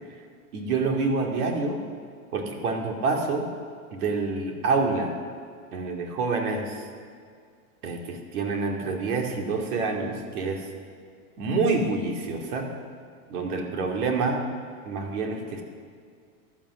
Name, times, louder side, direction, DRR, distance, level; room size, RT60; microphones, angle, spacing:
voice 1, 0.5-1.8 2.3-3.5 3.9-5.2 5.7-6.8 7.8-10.6 11.4-12.7 13.3-14.4 14.9-15.6, right 3 dB, 80° right, 2 dB, 2.7 m, -27 dB
16.0 x 11.0 x 6.3 m, 2.1 s
supercardioid pair, 140°, 44 cm